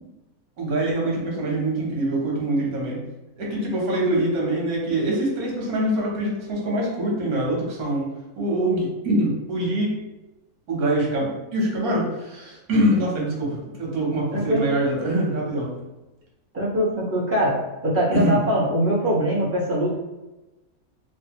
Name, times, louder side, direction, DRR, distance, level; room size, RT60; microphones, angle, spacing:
voice 1, 0.6-3.0 3.4-8.1 8.4-9.9 10.7-15.7 18.1-18.4 19.4-19.5, right 1 dB, 85° right, -3 dB, 1.4 m, -24 dB
voice 2, 14.3-14.7 16.5-17.6 17.8-19.9, equal, 10° right, -9 dB, 0.9 m, -22 dB
3.3 x 2.3 x 2.8 m, 1.0 s
omnidirectional pair, 1.5 m